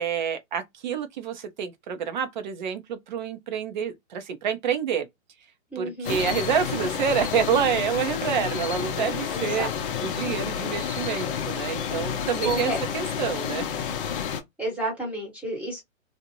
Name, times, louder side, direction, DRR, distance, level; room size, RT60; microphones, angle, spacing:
voice 1, 0.0-5.1 5.8-9.7 10.0-13.7, right 7 dB, 35° right, 0.5 m, -28 dB
voice 2, 5.7-6.2 9.3-9.7 12.4-12.8 14.6-15.8, right 2 dB, 5° right, 1.0 m, -30 dB
sound 1, 6.0-14.4, left 7 dB, 40° left, 0.6 m, -30 dB
2.6 x 2.1 x 2.8 m
hypercardioid pair, 145°, 40 cm